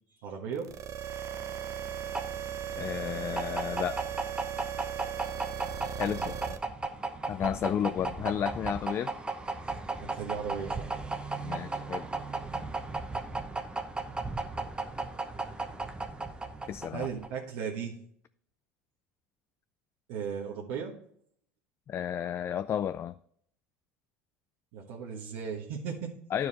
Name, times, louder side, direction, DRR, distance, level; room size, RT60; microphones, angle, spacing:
voice 1, 0.2-0.7 6.0-6.3 10.0-10.9 16.9-18.0 20.1-20.9 24.7-26.1, right 7 dB, 70° right, 1.4 m, -36 dB
sound 1, 0.6-6.6, right 8 dB, 50° right, 0.8 m, -37 dB
sound 2, 1.4-17.4, right 3 dB, 15° right, 0.9 m, -36 dB
voice 2, 2.8-4.1 6.0-6.6 7.3-9.1 11.4-12.1 16.7-17.1 21.9-23.2 26.3-26.5, left 9 dB, 35° left, 0.3 m, -32 dB
10.5 x 4.8 x 4.2 m
hypercardioid pair, 85°, 7 cm